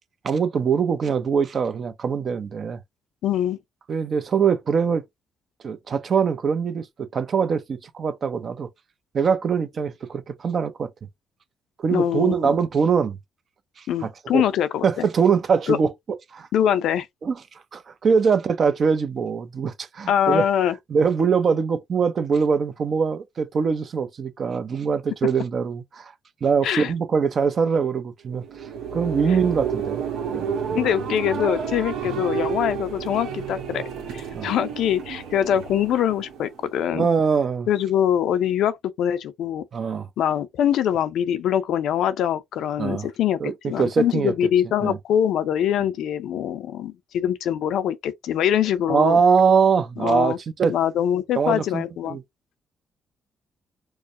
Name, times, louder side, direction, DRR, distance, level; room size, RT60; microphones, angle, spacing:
voice 1, 0.2-2.8 3.9-5.0 5.6-6.9 7.1-8.7 9.1-10.9 11.8-13.2 13.8-14.4 14.8-15.9 16.3-16.5 17.2-17.4 17.7-20.5 20.9-26.1 26.4-28.4 28.9-30.0 30.3-30.8 34.3-34.5 36.9-37.7 39.7-40.1 42.8-43.1 43.4-44.3 44.8-45.0 48.9-50.7 51.4-52.2, right 6 dB, 50° right, 0.6 m, -22 dB
voice 2, 3.2-3.6 11.9-12.5 13.9-15.1 15.7-15.8 16.5-17.1 20.1-20.7 26.6-26.9 30.7-33.8 34.1-37.1 37.7-39.6 40.2-49.2 50.0-50.4 50.7-52.2, left 10 dB, 80° left, 0.5 m, -23 dB
sound 1, 28.3-36.9, right 6 dB, 85° right, 1.0 m, -30 dB
4.7 x 2.1 x 2.6 m
cardioid pair, 90°, 0 cm